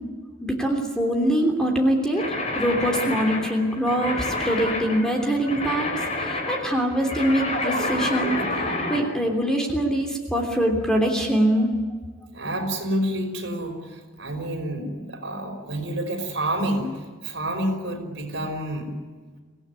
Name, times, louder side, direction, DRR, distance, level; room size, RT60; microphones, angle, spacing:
voice 1, 0.4-11.7, right 1 dB, 5° left, 1 dB, 3.2 m, -23 dB
sound 1, 2.2-9.0, left 2 dB, 35° left, 4.5 m, -28 dB
voice 2, 12.3-16.9 17.2-19.0, right 1 dB, 65° right, 3 dB, 5.4 m, -28 dB
25.5 x 17.5 x 9.8 m, 1.5 s
head